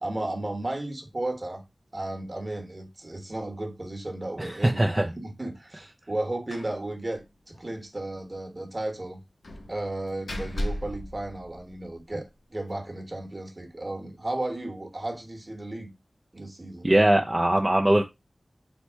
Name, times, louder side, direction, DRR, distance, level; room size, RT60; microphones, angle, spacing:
voice 1, 0.0-1.6 1.9-9.2 9.7-15.9 16.3-16.9, right 1 dB, 35° right, 1.1 m, -34 dB
voice 2, 4.4-5.1 16.8-18.0, right 1 dB, 20° right, 0.4 m, -21 dB
Slam, 6.5-6.8 7.1-7.2 7.5-7.7 9.4-12.0, left 1 dB, 85° left, 0.7 m, -36 dB
4.4 x 2.1 x 4.4 m
wide cardioid pair, 65°, 0 cm